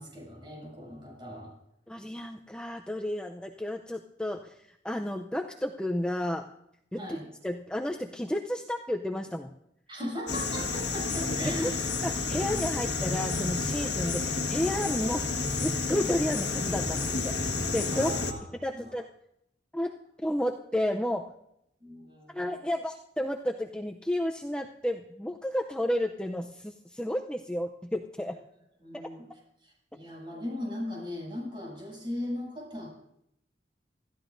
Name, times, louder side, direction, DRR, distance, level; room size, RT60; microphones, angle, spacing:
voice 1, 0.0-1.5 7.0-7.3 9.9-11.9 17.9-18.4 18.7-18.9 21.8-22.5 28.8-29.3 29.6-32.9, left 1 dB, 30° right, -3 dB, 7.7 m, -38 dB
voice 2, 1.9-4.6 4.8-6.5 6.9-7.0 7.4-9.5 11.4-11.7 12.0-18.1 18.6-19.0 19.7-20.0 20.2-21.3 22.3-28.3, left 1 dB, 5° left, 2 dB, 0.6 m, -32 dB
sound 1, 10.3-18.3, left 3 dB, 80° left, 1.5 m, -30 dB
26.0 x 13.5 x 2.6 m, 0.77 s
head